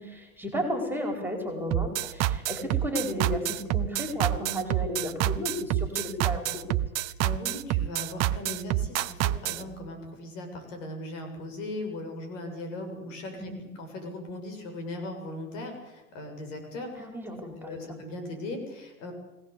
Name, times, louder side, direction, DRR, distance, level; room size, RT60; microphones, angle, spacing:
voice 1, 0.0-6.8 13.4-13.7 17.0-17.8, equal, 5° right, 4 dB, 4.8 m, -33 dB
sound 1, 1.7-9.6, right 14 dB, 35° right, 1.0 m, -27 dB
voice 2, 7.2-17.1 17.6-19.1, left 1 dB, 60° left, 5 dB, 7.5 m, -38 dB
23.5 x 18.0 x 8.4 m, 1.0 s
hypercardioid pair, 110°, 43 cm